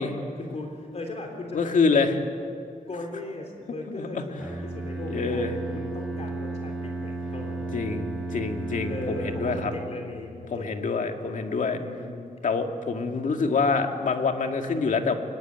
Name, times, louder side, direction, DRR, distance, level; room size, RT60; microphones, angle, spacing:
voice 1, 0.0-2.1 2.9-8.0 8.8-11.2 11.8-12.3 13.1-13.3, left 2 dB, 50° left, 2 dB, 3.5 m, -38 dB
voice 2, 1.5-2.2 3.9-4.2 5.1-5.6 7.7-9.7 10.5-11.8 12.4-15.1, left 4 dB, 70° left, 4 dB, 2.2 m, -26 dB
Bowed string instrument, 4.4-10.3, right 2 dB, ahead, 6.1 m, -34 dB
23.5 x 21.0 x 9.6 m, 2.3 s
wide cardioid pair, 100°, 14 cm